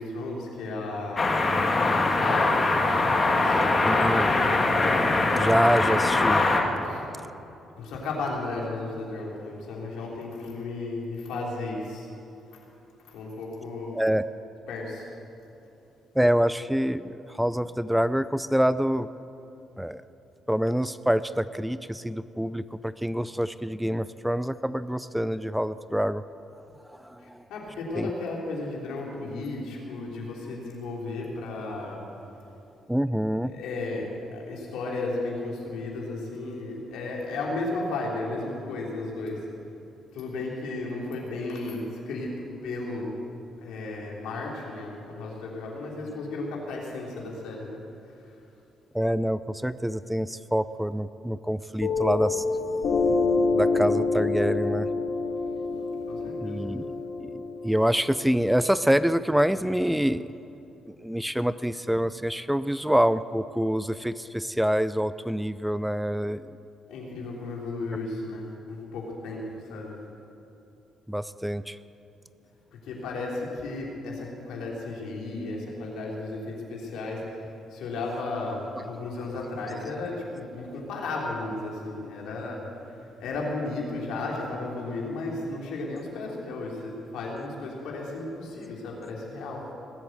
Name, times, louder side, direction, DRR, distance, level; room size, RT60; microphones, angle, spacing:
voice 1, 0.0-1.4 1.7-2.7 3.2-3.9 6.8-7.1 7.8-12.1 13.0-14.0 14.7-15.1 27.5-32.0 33.4-39.4 40.1-43.1 43.6-47.8 56.1-56.6 66.9-70.0 72.8-82.6 83.2-89.6, left 2 dB, 85° left, -2 dB, 3.4 m, -34 dB
sound 1, 1.2-6.6, left 3 dB, 35° left, 1.9 m, -22 dB
voice 2, 3.8-4.3 5.3-6.4 13.9-14.2 16.1-19.1 19.8-20.0 20.5-26.2 26.9-27.4 28.0-28.1 32.9-33.5 48.9-52.4 53.5-54.9 56.4-56.8 57.2-60.3 60.9-66.6 71.1-71.8, equal, 5° right, 14 dB, 0.4 m, -26 dB
Piano, 51.8-58.9, left 3 dB, 55° left, 2.5 m, -27 dB
19.5 x 8.5 x 8.1 m, 2.8 s
cardioid pair, 90°, 0 cm